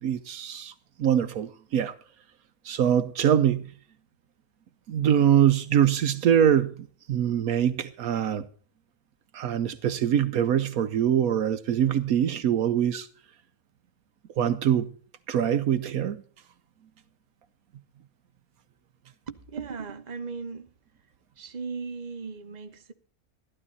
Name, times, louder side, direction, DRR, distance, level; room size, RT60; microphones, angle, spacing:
voice 1, 0.0-0.7 1.0-2.0 2.6-3.7 4.9-8.5 9.3-13.1 14.4-14.9 15.3-16.2, right 9 dB, 70° right, 1.2 m, -23 dB
voice 2, 19.3-20.7 21.4-22.9, right 5 dB, 30° right, 1.2 m, -37 dB
13.5 x 12.5 x 4.1 m
omnidirectional pair, 1.6 m